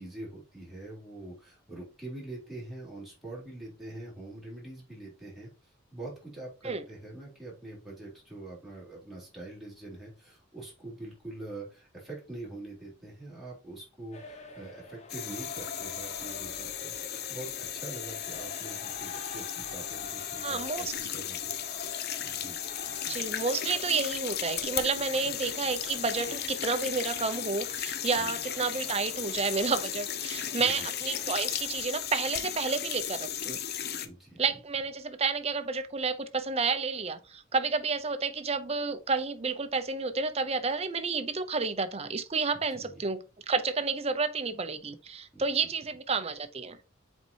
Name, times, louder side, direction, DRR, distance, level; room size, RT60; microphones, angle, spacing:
voice 1, 0.0-21.5 22.2-22.6 22.8-23.3 25.1-25.3 28.2-28.5 30.6-30.9 34.0-34.4 42.5-43.0 45.3-45.5, right 2 dB, ahead, 3.5 m, -44 dB
sound 1, 14.1-31.8, left 3 dB, 35° left, 1.1 m, -47 dB
sound 2, 15.1-34.1, left 10 dB, 55° left, 0.6 m, -36 dB
voice 2, 20.4-20.9 23.1-33.6 34.4-43.2 43.5-46.8, right 4 dB, 30° right, 0.7 m, -30 dB
7.2 x 4.5 x 2.9 m
head